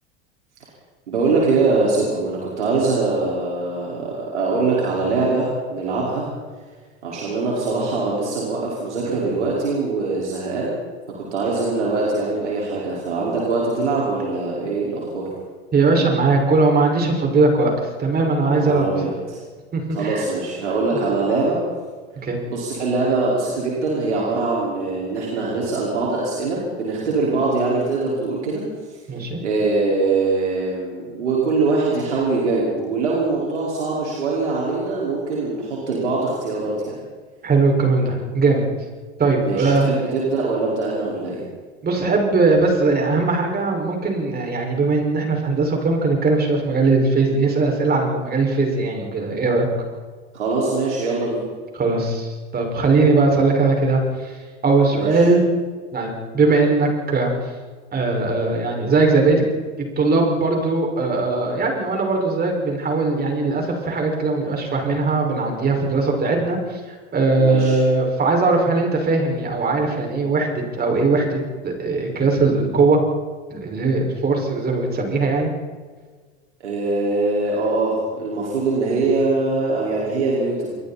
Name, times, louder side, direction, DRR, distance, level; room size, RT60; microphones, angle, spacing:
voice 1, 1.1-6.3 7.0-10.7 11.3-15.3 18.5-19.4 19.9-21.6 22.5-28.6 28.9-29.0 29.4-37.0 39.4-41.4 50.3-51.4 54.9-55.2 67.4-67.8 76.6-80.8, right 3 dB, 80° right, -5 dB, 5.4 m, -22 dB
voice 2, 15.7-18.9 19.7-20.2 22.2-22.4 29.1-29.4 37.4-38.7 39.2-39.9 41.8-49.7 51.7-54.3 54.6-55.4 55.9-57.3 57.9-59.4 59.8-66.8 67.1-73.0 73.5-75.5, right 3 dB, 25° right, 1 dB, 6.2 m, -19 dB
29.5 x 22.0 x 4.5 m, 1.5 s
hypercardioid pair, 85°, 34 cm